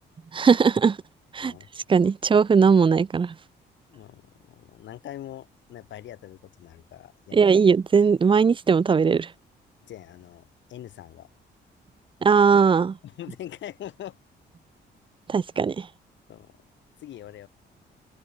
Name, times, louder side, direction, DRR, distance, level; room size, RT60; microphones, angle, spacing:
voice 1, 0.3-1.0 1.3-1.5 1.9-3.3 7.3-9.3 12.2-13.0 15.3-15.9, right 5 dB, 25° right, 0.6 m, -19 dB
voice 2, 3.9-7.5 9.8-11.3 13.0-14.2 16.3-16.6 17.0-17.5, left 12 dB, 80° left, 5.1 m, -42 dB
open air
cardioid pair, 110°, 19 cm